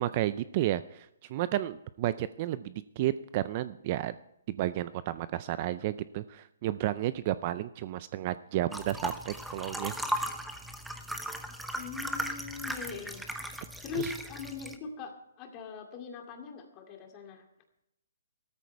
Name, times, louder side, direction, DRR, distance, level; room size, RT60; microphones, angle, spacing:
voice 1, 0.0-4.1 4.5-9.9 14.0-14.1, right 14 dB, 30° right, 15 dB, 0.4 m, -32 dB
sound 1, 8.7-14.8, right 1 dB, ahead, 0.8 m, -37 dB
voice 2, 11.7-13.3 13.8-17.4, left 5 dB, 20° left, 3 dB, 2.3 m, -41 dB
14.5 x 13.5 x 4.6 m, 0.81 s
hypercardioid pair, 165°, 0 cm